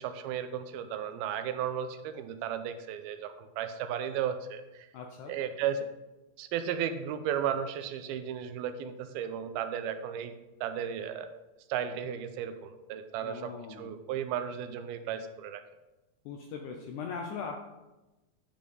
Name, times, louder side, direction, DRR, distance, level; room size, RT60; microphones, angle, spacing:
voice 1, 0.0-4.9 5.3-5.9 6.4-10.3 10.6-11.3 11.7-15.6, right 8 dB, 90° right, 9 dB, 2.5 m, -34 dB
voice 2, 4.9-5.3 13.2-13.9 16.2-17.6, left 5 dB, 80° left, 3 dB, 1.8 m, -40 dB
10.0 x 5.1 x 5.3 m, 1.1 s
omnidirectional pair, 4.3 m